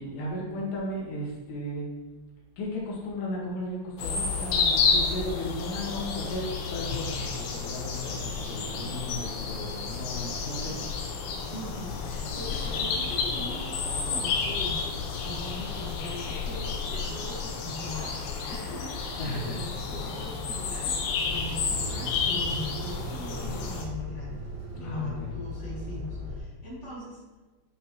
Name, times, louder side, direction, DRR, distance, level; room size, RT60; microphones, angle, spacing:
voice 1, 0.0-1.9 2.6-10.8 19.2-19.6 24.8-25.4, left 1 dB, 70° left, -4 dB, 3.8 m, -35 dB
sound 1, 4.0-23.8, left 5 dB, 85° left, 3.4 m, -31 dB
voice 2, 11.5-24.4 24.7-27.2, left 2 dB, 40° left, -7 dB, 1.0 m, -40 dB
sound 2, 21.3-26.4, right 1 dB, 55° right, 2.9 m, -38 dB
10.5 x 5.9 x 3.1 m, 1.2 s
omnidirectional pair, 5.3 m